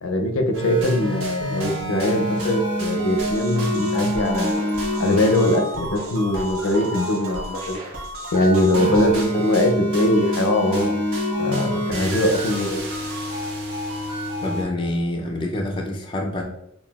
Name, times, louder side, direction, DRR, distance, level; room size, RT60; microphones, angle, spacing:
voice 1, 0.0-4.5 5.0-7.8 8.3-11.0 11.4-12.8, left 1 dB, 80° left, 5 dB, 0.5 m, -21 dB
sound 1, 0.5-14.6, equal, 70° right, 1.2 m, -27 dB
sound 2, 3.2-9.2, right 2 dB, 85° right, 0.8 m, -34 dB
voice 2, 14.4-16.4, left 1 dB, 25° left, 0 dB, 0.4 m, -26 dB
5.6 x 2.3 x 2.3 m, 0.75 s
head